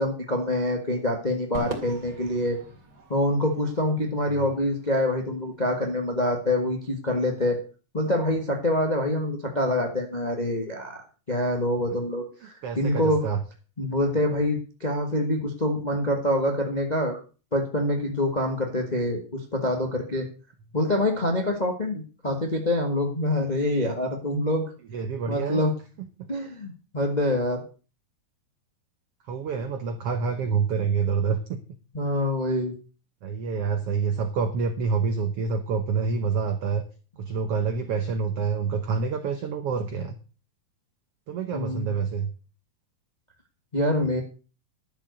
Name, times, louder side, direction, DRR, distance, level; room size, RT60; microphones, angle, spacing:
voice 1, 0.0-2.6 3.1-7.6 7.9-13.2 13.8-17.2 17.5-20.3 20.7-24.6 25.3-25.7 26.3-27.6 31.9-32.7 41.5-42.0 43.7-44.2, left 1 dB, 75° left, 3 dB, 0.4 m, -26 dB
Crowd / Fireworks, 1.5-6.0, right 2 dB, 35° right, 3.2 m, -42 dB
voice 2, 12.6-13.4 24.9-25.6 29.3-31.6 33.2-36.8 37.2-40.2 41.3-42.3, right 5 dB, 90° right, 7 dB, 1.3 m, -27 dB
12.0 x 7.2 x 6.6 m, 0.36 s
omnidirectional pair, 4.1 m